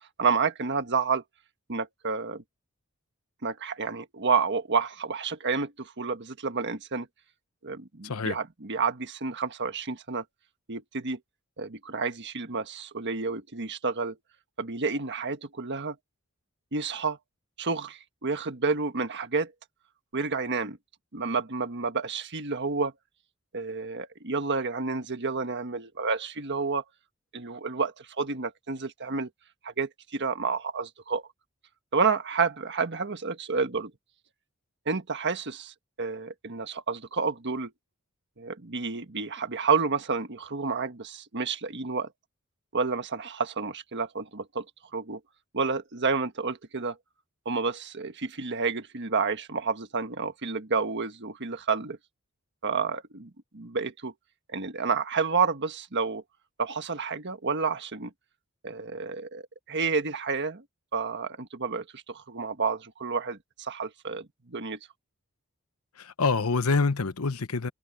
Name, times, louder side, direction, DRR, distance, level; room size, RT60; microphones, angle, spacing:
voice 1, 0.2-1.2 1.7-2.4 3.4-7.1 7.6-10.2 10.7-11.2 11.6-14.1 14.6-16.0 16.7-17.2 17.6-19.5 20.1-20.8 21.1-22.9 23.5-26.8 27.3-29.3 29.6-31.2 31.9-33.9 34.8-37.7 38.4-42.1 42.7-44.6 44.9-45.2 45.5-47.0 47.4-52.0 52.6-54.1 54.5-56.2 56.6-58.1 58.6-59.4 59.7-60.6 60.9-64.8, right 4 dB, 55° right, 1.5 m, -30 dB
voice 2, 8.0-8.4 66.0-67.7, left 4 dB, 80° left, 1.0 m, -26 dB
head